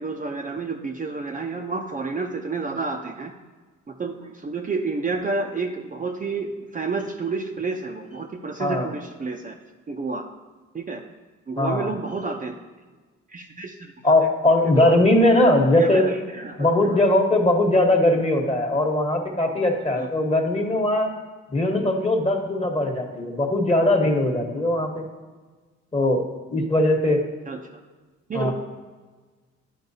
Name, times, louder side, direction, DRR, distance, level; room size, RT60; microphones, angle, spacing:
voice 1, 0.0-3.3 3.9-9.5 9.9-10.2 10.7-11.0 11.5-12.5 13.3-13.9 14.8-14.9 15.3-17.0 20.0-20.1 27.5-27.8 28.3-28.5, right 4 dB, 25° right, 1 dB, 0.6 m, -30 dB
voice 2, 11.6-11.9 14.0-16.1 16.6-21.1 21.5-25.0 25.9-26.2 26.5-27.2 28.3-28.5, left 1 dB, 20° left, 2 dB, 1.2 m, -20 dB
11.0 x 4.4 x 2.7 m, 1.4 s
cardioid pair, 90°, 30 cm